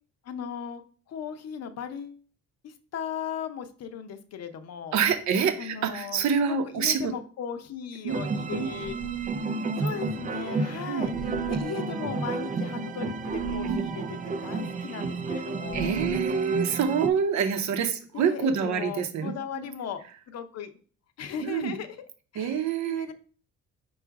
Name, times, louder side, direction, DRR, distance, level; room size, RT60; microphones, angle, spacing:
voice 1, 0.2-0.8 1.1-2.2 2.6-5.0 5.6-6.2 6.5-9.0 9.8-11.1 11.5-16.0 18.1-20.7 21.2-22.0 22.3-23.1, left 8 dB, 60° left, 9 dB, 0.6 m, -37 dB
voice 2, 4.9-7.1 8.0-8.2 8.6-8.7 10.9-11.1 15.7-19.7 21.4-21.7 22.3-23.1, right 7 dB, 70° right, 7 dB, 0.8 m, -26 dB
sound 1, 8.1-17.1, right 3 dB, 30° right, 0.4 m, -31 dB
sound 2, 8.8-9.5 11.0-11.7 13.3-13.9 15.7-16.4, right 6 dB, 85° left, 1.0 m, -33 dB
4.8 x 2.3 x 4.6 m, 0.41 s
cardioid pair, 90°, 30 cm